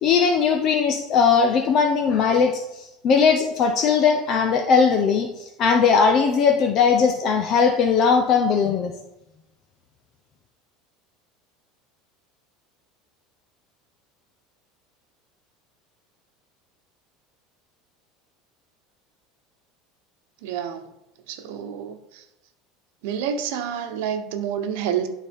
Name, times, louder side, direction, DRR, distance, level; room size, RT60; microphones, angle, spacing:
voice 1, 0.0-2.6 3.0-5.3 5.6-8.9, left 6 dB, 40° left, 4 dB, 0.7 m, -19 dB
voice 2, 20.4-20.9 21.3-22.0 23.0-25.1, right 8 dB, 75° right, 7 dB, 1.0 m, -28 dB
11.5 x 4.0 x 3.6 m, 0.89 s
cardioid pair, 155°, 0 cm